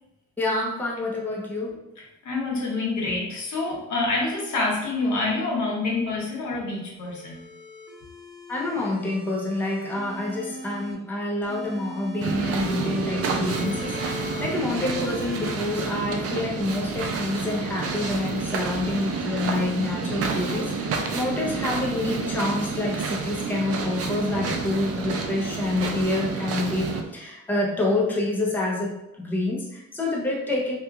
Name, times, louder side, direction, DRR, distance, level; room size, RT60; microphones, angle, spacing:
voice 1, 0.4-1.8 8.5-28.9 29.2-30.8, left 2 dB, 5° left, -2 dB, 0.6 m, -27 dB
voice 2, 1.7-7.4, left 3 dB, 70° left, -3 dB, 1.2 m, -27 dB
sound 1, 7.0-10.9 11.4-15.5, equal, 45° left, 1.4 m, -38 dB
sound 2, 12.2-27.0, right 4 dB, 50° right, 0.5 m, -29 dB
2.9 x 2.3 x 3.5 m, 0.92 s
cardioid pair, 90°, 30 cm